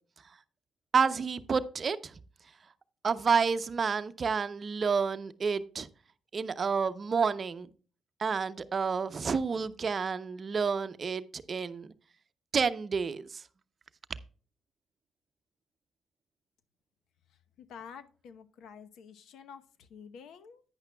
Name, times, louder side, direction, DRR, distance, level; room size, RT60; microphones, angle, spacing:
voice 1, 0.9-2.1 3.0-5.9 6.3-7.7 8.2-11.9 12.5-13.4, right 5 dB, 40° right, 12 dB, 0.7 m, -29 dB
voice 2, 17.6-20.6, left 7 dB, 75° left, 10 dB, 0.9 m, -49 dB
10.5 x 9.7 x 2.3 m, 0.39 s
cardioid pair, 90°, 0 cm